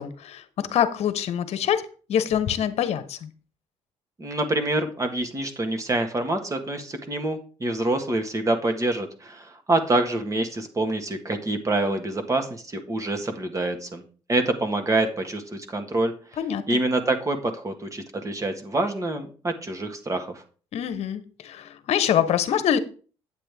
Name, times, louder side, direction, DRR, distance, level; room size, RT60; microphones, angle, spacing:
voice 1, 0.0-3.3 16.4-16.8 20.7-22.8, left 9 dB, 65° left, 1.0 m, -25 dB
voice 2, 4.2-14.0 14.3-16.1 16.7-20.4, right 2 dB, 30° right, 1.6 m, -26 dB
8.3 x 7.8 x 3.5 m
cardioid pair, 85°, 11 cm